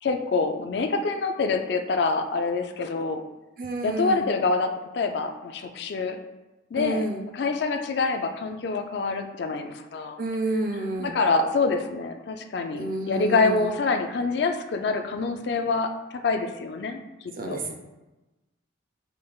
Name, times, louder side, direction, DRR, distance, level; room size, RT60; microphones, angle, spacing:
voice 1, 0.0-3.2 3.8-6.2 6.7-7.0 7.3-10.2 11.0-15.9 16.2-17.0 17.5-17.6, left 4 dB, 55° left, 6 dB, 0.3 m, -26 dB
voice 2, 3.6-4.2 6.7-7.2 10.2-11.2 12.7-13.7 17.4-17.7, right 2 dB, 45° right, 2 dB, 0.5 m, -30 dB
5.4 x 3.3 x 2.3 m, 1.1 s
head